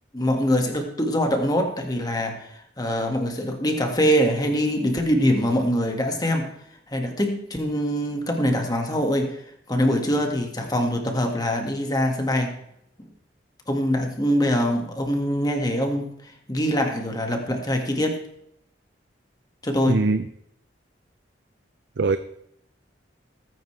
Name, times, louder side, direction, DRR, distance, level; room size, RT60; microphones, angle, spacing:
voice 1, 0.1-6.5 6.9-9.4 9.7-12.6 13.7-18.2 19.6-20.0, equal, 20° left, 3 dB, 1.8 m, -24 dB
voice 2, 19.9-20.3 22.0-22.2, right 3 dB, 70° right, 10 dB, 0.6 m, -21 dB
18.5 x 9.4 x 3.3 m, 0.74 s
head